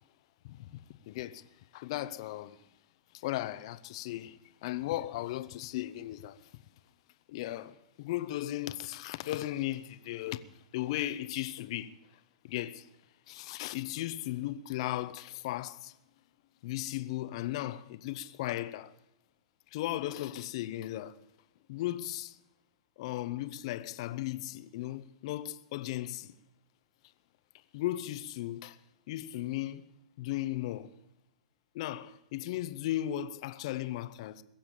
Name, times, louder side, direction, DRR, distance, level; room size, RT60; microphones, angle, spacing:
voice 1, 0.4-1.4 1.7-2.6 3.1-6.4 7.3-10.5 10.7-11.9 12.4-12.9 13.3-15.9 16.6-18.9 19.7-21.2 21.7-22.4 23.0-26.4 27.7-28.8 29.1-29.8 30.2-30.9 31.7-34.4, left 14 dB, 55° left, 0.9 m, -36 dB
21.5 x 7.5 x 8.8 m
hypercardioid pair, 110°, 4 cm